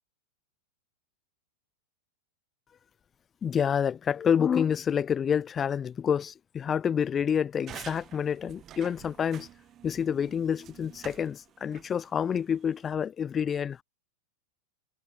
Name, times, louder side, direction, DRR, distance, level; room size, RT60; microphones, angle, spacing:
voice 1, 3.4-9.5 9.8-13.8, left 8 dB, 20° left, 0.3 m, -28 dB
sound 1, 7.7-12.9, right 11 dB, 30° right, 1.2 m, -49 dB
figure-of-eight pair, 90°, 0 cm